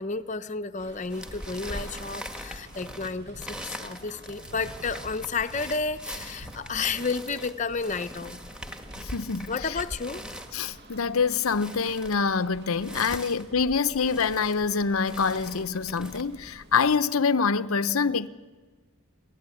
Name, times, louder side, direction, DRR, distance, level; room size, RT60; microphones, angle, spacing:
voice 1, 0.0-8.4 9.5-10.2 13.1-13.2, left 4 dB, 35° left, 0.8 m, -31 dB
sound 1, 0.8-17.0, right 1 dB, 50° right, 2.6 m, -51 dB
sound 2, 1.1-16.2, equal, 5° right, 1.7 m, -41 dB
sound 3, 2.1-17.2, equal, 85° right, 3.0 m, -53 dB
voice 2, 9.0-9.8 10.5-18.3, left 5 dB, 85° left, 0.8 m, -26 dB
26.5 x 18.0 x 9.9 m
head